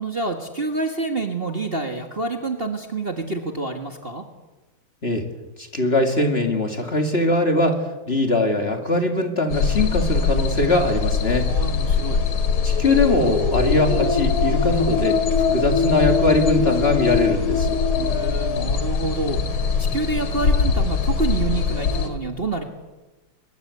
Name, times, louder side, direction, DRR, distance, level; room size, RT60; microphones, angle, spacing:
voice 1, 0.0-4.2 11.4-12.2 17.9-22.6, right 3 dB, 30° right, 4 dB, 1.7 m, -28 dB
voice 2, 5.6-11.5 12.6-15.2 15.5-17.8, left 2 dB, 30° left, 4 dB, 2.3 m, -21 dB
sound 1, 9.5-22.1, left 5 dB, 75° left, 3.0 m, -22 dB
23.0 x 21.0 x 8.4 m, 1.2 s
omnidirectional pair, 2.3 m